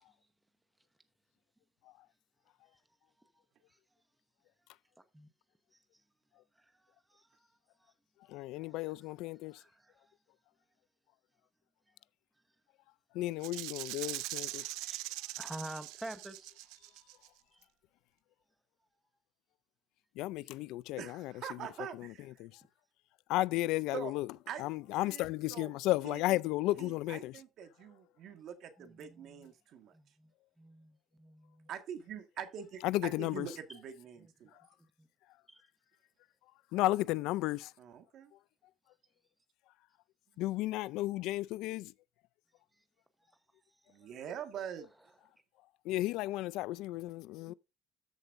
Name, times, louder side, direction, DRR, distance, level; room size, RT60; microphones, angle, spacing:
voice 1, 6.6-7.5 7.8-7.9 8.5-8.9 9.5-10.1 14.2-16.5 17.5-17.6 28.3-28.4 28.8-29.5 29.9-30.3 30.6-31.7 34.2-34.3 35.0-35.1 35.5-35.6 42.8-42.9 47.5-47.6, right 1 dB, 5° right, 1.0 m, -50 dB
voice 2, 8.3-9.6 13.1-14.7 20.2-21.3 22.0-22.1 22.4-22.6 23.3-24.3 24.6-27.3 32.8-33.5 36.7-37.7 40.4-41.9 45.8-47.5, left 17 dB, 65° left, 0.3 m, -33 dB
Rattle (instrument), 13.4-17.3, right 19 dB, 85° right, 0.5 m, -41 dB
voice 3, 21.0-22.5 23.9-24.1 24.5-24.6 25.0-25.7 26.0-26.2 26.8-29.9 31.7-34.6 37.8-38.3 43.9-44.9, right 8 dB, 45° right, 1.6 m, -44 dB
13.5 x 7.0 x 2.6 m
cardioid pair, 180°, 0 cm